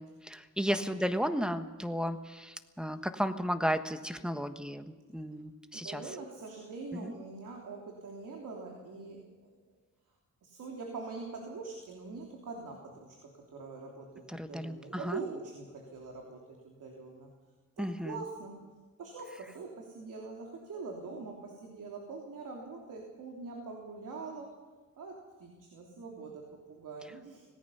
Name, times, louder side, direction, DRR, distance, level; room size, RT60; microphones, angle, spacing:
voice 1, 0.0-6.0 6.9-7.1 14.3-15.2 17.8-18.2, equal, 5° right, 8 dB, 1.3 m, -34 dB
voice 2, 5.7-9.6 10.4-17.3 17.8-18.6 19.0-24.5 25.0-27.4, right 4 dB, 85° right, 0 dB, 3.3 m, -44 dB
25.5 x 18.0 x 5.7 m, 1.3 s
cardioid pair, 90°, 31 cm